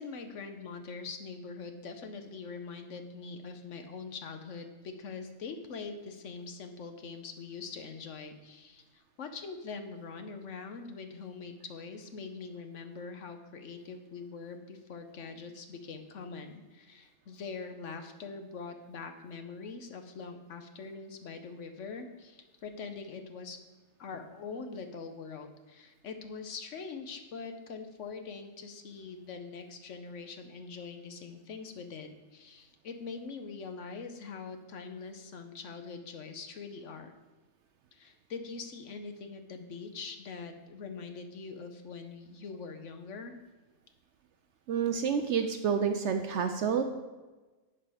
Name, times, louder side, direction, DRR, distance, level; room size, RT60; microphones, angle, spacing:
voice 1, 0.0-23.6 24.0-37.1 37.9-43.4, left 4 dB, 60° left, 7 dB, 1.0 m, -43 dB
voice 2, 44.7-46.8, right 7 dB, 65° right, 7 dB, 0.8 m, -29 dB
11.0 x 4.9 x 4.8 m, 1.2 s
omnidirectional pair, 1.5 m